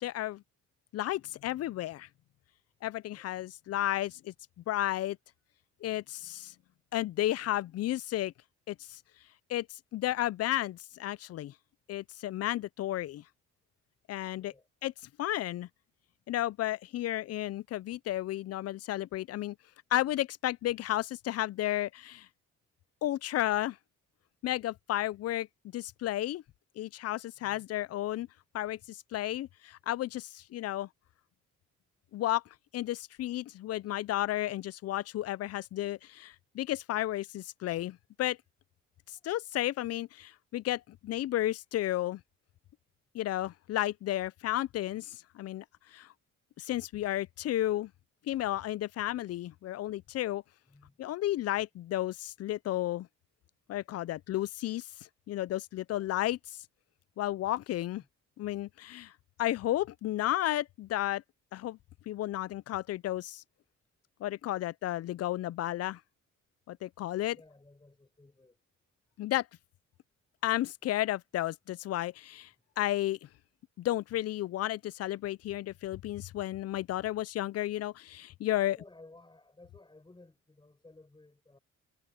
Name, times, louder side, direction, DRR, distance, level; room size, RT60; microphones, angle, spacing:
voice 1, 0.0-0.4 0.9-2.1 2.8-4.3 4.7-5.2 5.8-6.5 6.9-8.3 8.7-9.0 9.5-9.7 9.9-11.5 11.9-13.2 14.1-14.5 14.8-14.9 15.2-15.7 16.3-19.6 19.9-22.3 23.0-23.8 24.4-25.5 25.7-26.4 26.8-28.3 28.5-30.9 32.1-32.4 32.7-38.4 39.1-42.2 43.1-45.6 45.9-46.1 46.6-47.9 48.3-50.4 51.0-53.1 53.7-54.9 55.3-56.6 57.2-58.0 58.4-59.1 59.4-61.2 61.5-61.8 62.1-63.4 64.2-66.0 66.7-67.4 69.2-69.5 70.4-72.5 72.8-73.3 73.8-78.8, left 14 dB, 55° left, 0.5 m, -32 dB
voice 2, 14.3-14.7 27.4-27.7 33.9-34.0 39.1-39.3 50.6-51.0 56.0-56.1 58.0-58.1 67.3-68.6 72.5-72.8 78.5-81.6, left 2 dB, 15° left, 5.7 m, -58 dB
cardioid pair, 90°, 30 cm